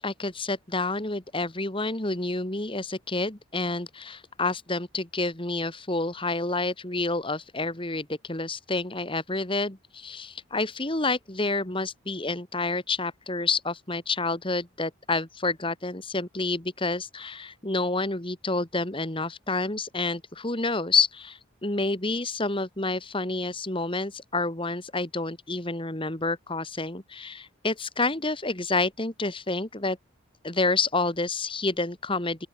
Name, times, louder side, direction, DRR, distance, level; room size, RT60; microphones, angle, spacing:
voice 1, 0.0-30.0 30.4-32.5, left 3 dB, 25° left, 2.2 m, -29 dB
open air
head